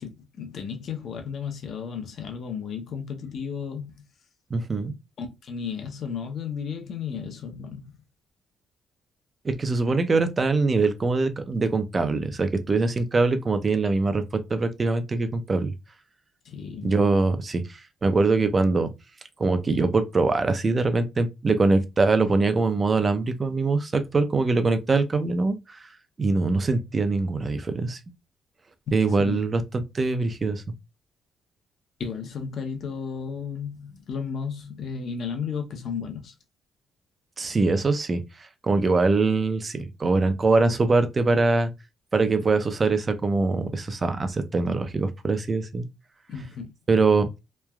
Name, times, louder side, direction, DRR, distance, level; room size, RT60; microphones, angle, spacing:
voice 1, 0.0-4.0 5.2-7.9 16.4-17.0 28.9-29.4 32.0-36.3 46.3-46.7, left 6 dB, 60° left, 0.7 m, -34 dB
voice 2, 4.5-4.9 9.4-15.7 16.8-17.6 18.0-18.9 19.4-25.6 26.2-28.0 28.9-30.6 37.4-38.2 38.6-41.7 42.1-45.9 46.9-47.3, right 3 dB, 30° right, 0.5 m, -23 dB
3.1 x 2.3 x 2.2 m
cardioid pair, 90°, 0 cm